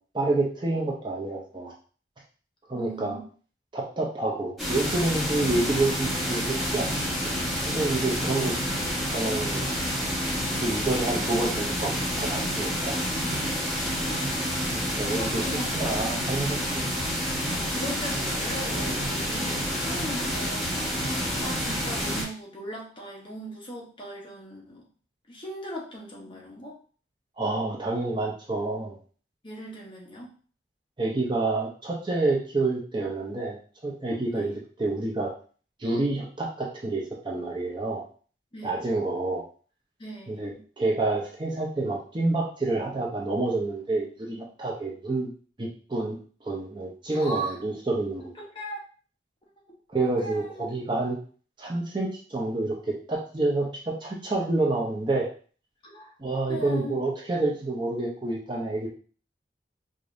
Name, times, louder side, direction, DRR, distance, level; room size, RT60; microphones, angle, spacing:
voice 1, 0.1-1.7 2.7-3.2 3.7-7.1 7.6-8.6 9.1-9.6 10.6-13.0 14.6-15.5 15.7-16.6 27.4-29.0 31.0-33.6 33.8-34.5 34.8-35.3 35.8-38.0 38.6-39.4 40.3-45.3 45.6-46.2 46.4-48.2 49.9-51.2 51.6-55.3 56.2-58.9, right 2 dB, 25° right, -2 dB, 0.7 m, -28 dB
voice 2, 2.7-3.2 15.1-15.8 17.7-21.1 21.4-24.8 25.3-26.8 29.4-30.3 34.3-34.5 38.5-38.8 40.0-40.6 47.1-47.5 48.4-48.8 50.2-50.7 55.8-56.1 56.5-57.0, right 1 dB, 30° left, -3 dB, 1.0 m, -38 dB
sound 1, 4.6-22.2, equal, ahead, 1.5 m, -28 dB
4.8 x 2.7 x 2.6 m, 0.41 s
head